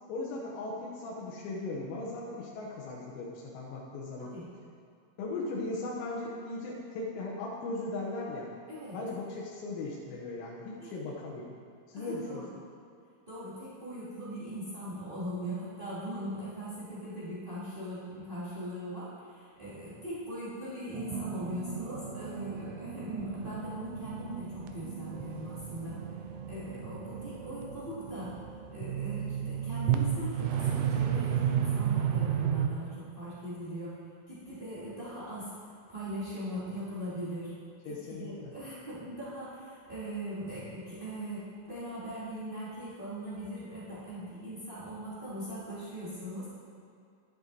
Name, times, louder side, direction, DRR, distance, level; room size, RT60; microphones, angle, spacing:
voice 1, 0.1-4.3 5.2-8.5 8.9-11.5 11.9-12.4 37.9-38.5, left 2 dB, 80° left, -4 dB, 3.8 m, -38 dB
voice 2, 8.7-9.0 10.8-10.9 11.9-12.5 13.3-26.0 26.5-28.3 28.7-33.9 34.3-35.5 35.9-37.5 37.9-46.5, right 1 dB, 45° right, -11 dB, 0.6 m, -40 dB
sound 1, 20.9-32.7, right 9 dB, 85° right, 2.8 m, -33 dB
11.0 x 10.0 x 4.1 m, 2.4 s
omnidirectional pair, 6.0 m